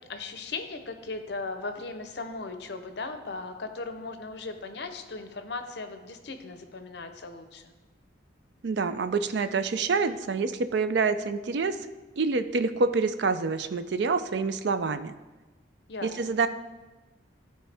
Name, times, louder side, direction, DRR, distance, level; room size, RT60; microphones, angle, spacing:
voice 1, 0.1-7.6 15.9-16.3, left 3 dB, 60° left, 8 dB, 0.7 m, -37 dB
voice 2, 8.6-11.8 12.2-15.1 16.0-16.5, right 4 dB, 65° right, 11 dB, 0.4 m, -27 dB
12.5 x 4.5 x 3.4 m, 1.2 s
head